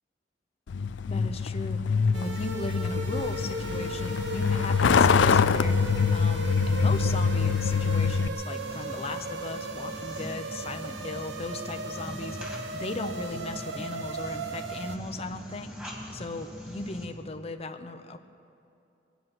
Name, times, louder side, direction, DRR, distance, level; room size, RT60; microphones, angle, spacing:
Truck, 0.7-8.3, left 5 dB, 90° left, 0.4 m, -25 dB
voice 1, 1.1-1.8 2.1-18.2, left 2 dB, 35° left, 6 dB, 0.8 m, -37 dB
sound 1, 2.1-15.0, right 2 dB, 70° right, 0.8 m, -37 dB
sound 2, 8.5-17.1, equal, 5° right, 2.6 m, -42 dB
21.5 x 9.4 x 6.1 m, 2.6 s
head